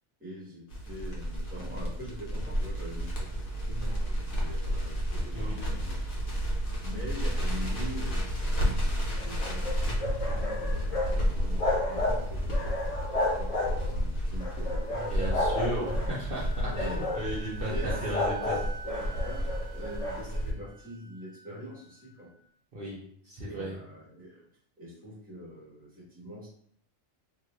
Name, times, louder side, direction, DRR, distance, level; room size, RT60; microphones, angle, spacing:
voice 1, 0.2-6.2 6.8-13.6 13.9-15.6 16.6-17.0 17.5-18.0 18.5-22.3 23.5-24.4 24.8-26.5, equal, 5° right, -7 dB, 1.3 m, -44 dB
Crackle, 0.7-20.5, equal, 70° left, 1.2 m, -31 dB
voice 2, 5.3-5.7 10.2-10.4 15.1-18.6 22.7-23.8, right 1 dB, 50° right, -6 dB, 0.9 m, -35 dB
sound 1, 9.2-11.1 11.4-12.2 12.5-14.0 14.4-16.1 16.6-17.3 17.8-20.2, left 2 dB, 35° left, 0.6 m, -32 dB
Wind instrument woodwind instrument, 14.7-22.4, right 4 dB, 90° right, 1.1 m, -49 dB
2.8 x 2.5 x 3.0 m, 0.64 s
omnidirectional pair, 1.3 m